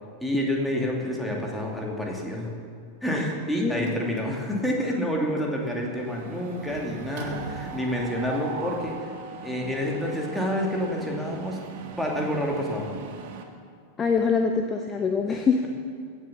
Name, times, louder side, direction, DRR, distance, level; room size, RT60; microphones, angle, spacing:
voice 1, 0.2-2.5 3.0-9.0 9.4-11.6 12.0-12.9, equal, 5° left, -2 dB, 2.5 m, -28 dB
voice 2, 3.6-3.9 14.0-15.6, left 5 dB, 20° left, 4 dB, 0.8 m, -24 dB
Mechanisms, 3.9-4.5 4.8-5.0 5.3-13.4, right 5 dB, 50° right, 1.4 m, -39 dB
16.0 x 7.1 x 7.1 m, 2.2 s
figure-of-eight pair, 90°, 0 cm